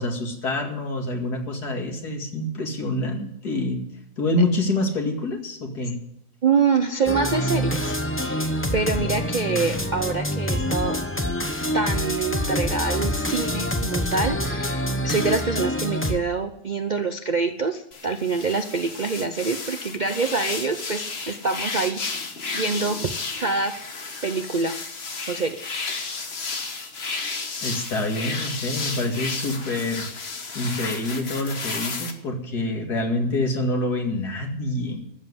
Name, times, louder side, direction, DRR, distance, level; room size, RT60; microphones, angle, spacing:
voice 1, 0.0-3.8 4.2-6.0 27.6-30.1 30.5-35.0, left 2 dB, 80° left, 2 dB, 2.8 m, -26 dB
voice 2, 6.4-11.0 11.7-22.0 22.5-23.8 24.2-24.8 25.3-25.6, right 4 dB, 45° right, 8 dB, 0.6 m, -26 dB
sound 1, 7.1-16.2, left 1 dB, 10° left, 0.8 m, -26 dB
sound 2, 17.9-32.1, left 4 dB, 45° left, 1.5 m, -33 dB
13.5 x 7.5 x 9.6 m, 0.77 s
omnidirectional pair, 1.6 m